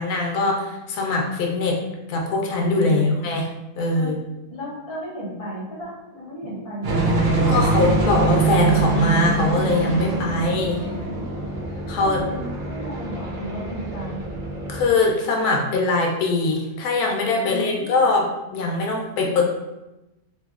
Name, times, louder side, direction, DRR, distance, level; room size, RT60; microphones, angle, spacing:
voice 1, 0.0-1.8 2.1-3.5 3.8-4.2 7.5-10.8 11.9-12.2 14.7-19.4, left 3 dB, 85° left, 0 dB, 1.1 m, -22 dB
voice 2, 2.8-3.2 3.9-4.1 4.5-7.7 10.9-11.4 12.0-14.2 17.4-18.1, equal, 30° left, -7 dB, 0.7 m, -34 dB
sound 1, 6.8-14.9, right 3 dB, 65° right, 0.5 m, -24 dB
2.9 x 2.5 x 2.3 m, 0.98 s
omnidirectional pair, 1.6 m